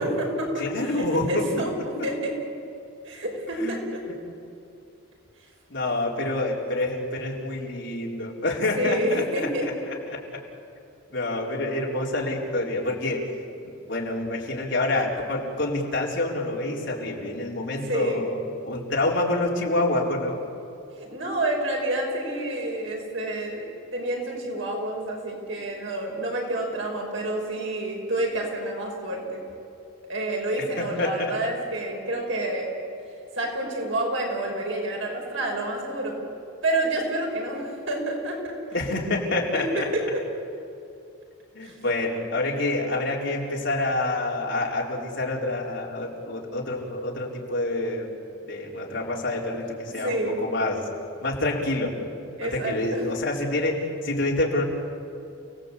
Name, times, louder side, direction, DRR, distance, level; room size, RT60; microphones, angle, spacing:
voice 1, 0.0-2.4 3.0-3.8 8.7-9.7 17.7-18.3 20.9-23.6 23.9-29.4 30.1-32.7 33.3-36.2 36.6-38.6 39.5-39.7 39.9-40.0 41.6-41.8 50.0-50.5 52.4-53.1, right 1 dB, 70° right, 0 dB, 5.7 m, -29 dB
voice 2, 0.6-1.6 2.0-2.1 3.5-3.7 5.7-9.2 9.9-10.2 11.1-13.2 13.9-20.4 30.8-31.4 38.7-39.9 41.5-48.1 48.5-50.8 51.2-51.9 52.4-54.6, left 2 dB, 55° left, -3 dB, 4.4 m, -27 dB
30.0 x 18.5 x 8.5 m, 2.6 s
head